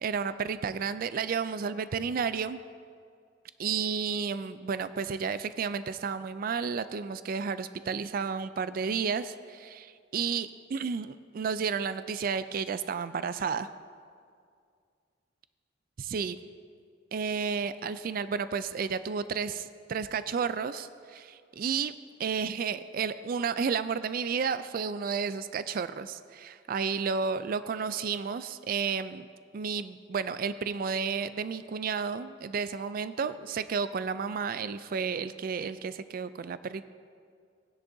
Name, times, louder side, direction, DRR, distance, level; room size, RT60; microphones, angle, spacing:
voice 1, 0.0-2.6 3.6-13.7 16.0-16.4 17.1-21.9 22.2-29.3 29.5-36.9, right 6 dB, 50° right, 13 dB, 0.3 m, -32 dB
18.5 x 10.0 x 2.7 m, 2.2 s
head